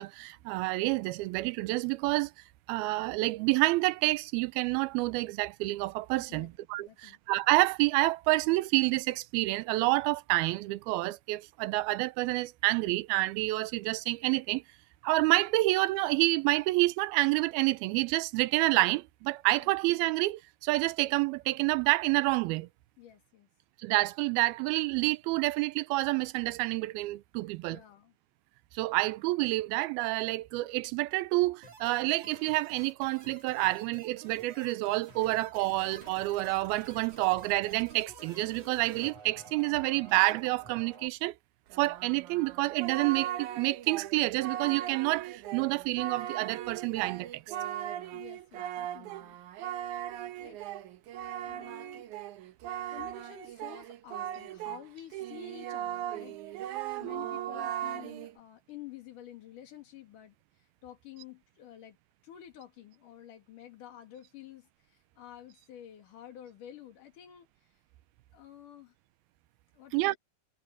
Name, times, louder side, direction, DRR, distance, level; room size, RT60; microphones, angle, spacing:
voice 1, 0.0-2.3 2.7-14.6 15.0-22.7 23.8-27.8 28.7-41.3 41.8-47.6 69.9-70.2, right 20 dB, 85° right, 2.6 m, -28 dB
voice 2, 6.8-7.2 19.6-19.7 23.0-23.5 27.6-28.2 48.1-49.4 50.4-50.6 51.4-52.1 52.9-62.0 62.2-67.5 68.3-69.0 69.7-70.2, left 11 dB, 60° left, 3.6 m, -50 dB
sound 1, 31.6-41.1, right 4 dB, 50° right, 5.6 m, -50 dB
Singing, 41.7-54.8 55.1-58.3, right 11 dB, 65° right, 2.2 m, -38 dB
omnidirectional pair, 4.3 m